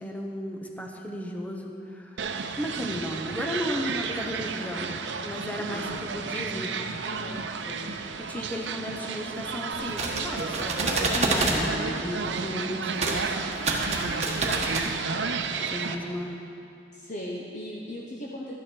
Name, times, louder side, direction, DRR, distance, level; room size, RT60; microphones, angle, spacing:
voice 1, 0.0-2.2 2.5-6.7 8.2-13.4 15.6-16.4, equal, 10° left, 1 dB, 0.8 m, -34 dB
sound 1, 2.2-16.0, right 5 dB, 80° right, 0.6 m, -32 dB
voice 2, 5.6-5.9 7.1-8.0 13.8-14.3 16.9-18.5, equal, 45° left, -3 dB, 0.9 m, -38 dB
sound 2, 9.7-11.6 13.0-13.2 13.5-14.9, right 3 dB, 40° right, 1.3 m, -27 dB
12.5 x 9.5 x 4.5 m, 2.6 s
head